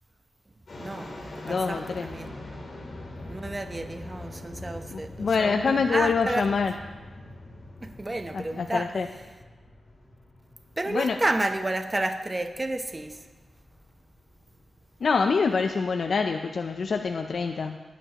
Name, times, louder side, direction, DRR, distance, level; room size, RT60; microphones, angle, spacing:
sound 1, 0.7-17.4, left 1 dB, 50° left, 3.2 m, -44 dB
voice 1, 0.8-2.3 3.3-6.5 7.8-8.9 10.8-13.3, right 2 dB, 20° right, 7 dB, 0.8 m, -31 dB
voice 2, 1.4-2.1 4.9-6.7 8.3-9.1 10.9-11.2 15.0-17.8, left 5 dB, 65° left, 5 dB, 0.6 m, -26 dB
17.5 x 10.0 x 3.0 m, 1.2 s
wide cardioid pair, 95°, 0 cm